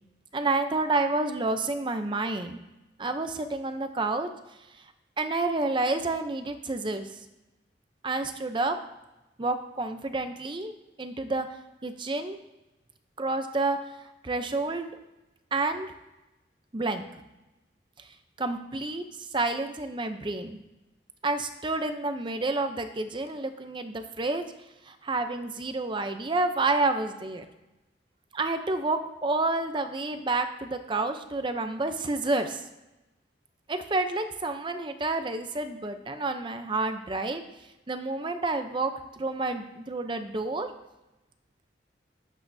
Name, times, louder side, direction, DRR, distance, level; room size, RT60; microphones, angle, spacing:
voice 1, 0.3-2.6 3.0-4.3 5.2-7.1 8.0-8.8 9.4-10.7 11.0-11.5 11.8-12.4 13.2-13.8 14.2-15.0 15.5-15.9 16.7-17.1 18.4-19.0 19.3-20.6 21.2-24.4 24.9-27.4 28.3-32.6 33.7-37.4 37.9-40.7, right 2 dB, 25° right, 7 dB, 0.6 m, -29 dB
20.0 x 8.2 x 2.7 m, 0.99 s
head